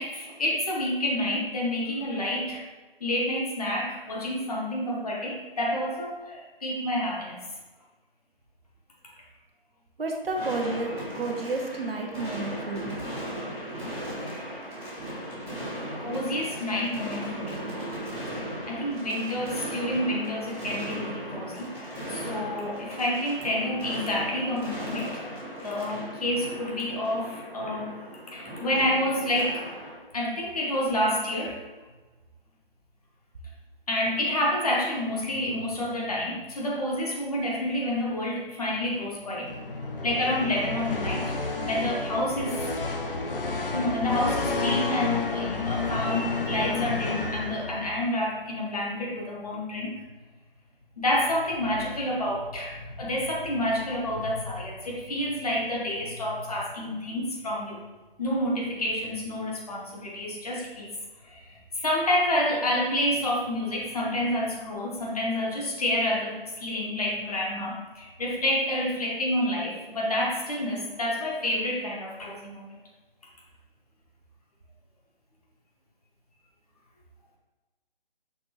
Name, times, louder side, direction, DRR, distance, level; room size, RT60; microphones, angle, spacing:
voice 1, 0.0-2.6 3.0-7.4 14.2-14.6 16.0-17.7 18.3-25.2 25.6-27.9 28.3-29.7 30.1-31.6 33.9-39.5 40.0-42.6 43.7-50.0 51.0-57.8 58.2-60.9 61.2-72.8, left 1 dB, 40° left, -3 dB, 1.0 m, -29 dB
voice 2, 10.0-13.0, right 2 dB, 70° right, 1 dB, 0.8 m, -31 dB
sound 1, 10.3-30.0, right 1 dB, ahead, 0.8 m, -37 dB
sound 2, 39.4-48.1, left 3 dB, 65° left, 0.7 m, -30 dB
5.9 x 2.6 x 3.0 m, 1.2 s
figure-of-eight pair, 155°, 29 cm